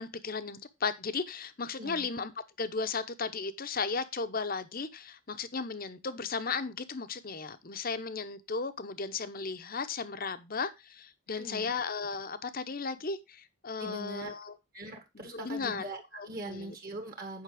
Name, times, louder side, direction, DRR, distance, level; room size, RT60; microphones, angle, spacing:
voice 1, 0.0-2.3 2.6-14.6 15.1-15.8 16.2-16.7, left 4 dB, 40° left, 0.8 m, -35 dB
voice 2, 1.8-2.1 11.4-11.7 13.8-14.3 14.7-17.4, right 2 dB, 45° right, 1.6 m, -42 dB
9.5 x 5.7 x 4.9 m
head